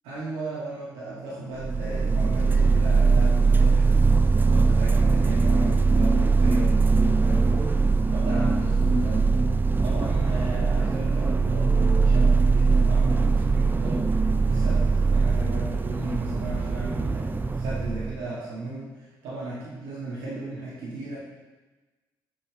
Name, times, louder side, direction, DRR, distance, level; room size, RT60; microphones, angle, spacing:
voice 1, 0.1-4.1 4.5-7.8 8.1-9.5 9.8-14.1 14.5-21.2, right 2 dB, 85° right, -9 dB, 2.2 m, -35 dB
sound 1, 1.6-18.2, right 4 dB, 20° right, 0.4 m, -21 dB
6.1 x 6.1 x 3.2 m, 1.2 s
supercardioid pair, 50°, 9 cm